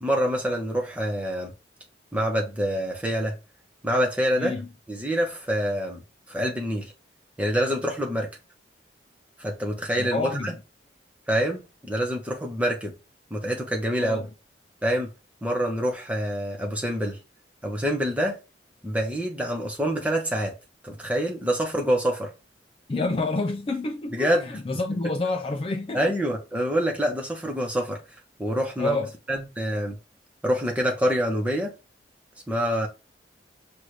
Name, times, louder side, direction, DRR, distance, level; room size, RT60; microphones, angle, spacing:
voice 1, 0.0-1.5 2.1-3.4 3.8-4.5 4.9-6.0 6.3-6.9 7.4-8.3 9.4-10.5 11.3-12.9 13.3-14.2 14.8-15.1 15.4-17.2 17.6-18.4 18.8-20.5 20.8-22.3 24.1-24.6 25.9-28.0 28.4-29.0 29.3-30.0 30.4-31.7 32.5-32.9, equal, 5° right, 1.0 m, -26 dB
voice 2, 4.4-4.7 9.9-10.6 14.0-14.3 22.9-26.1 28.8-29.1, left 2 dB, 30° left, 0.3 m, -28 dB
6.2 x 2.5 x 3.2 m
head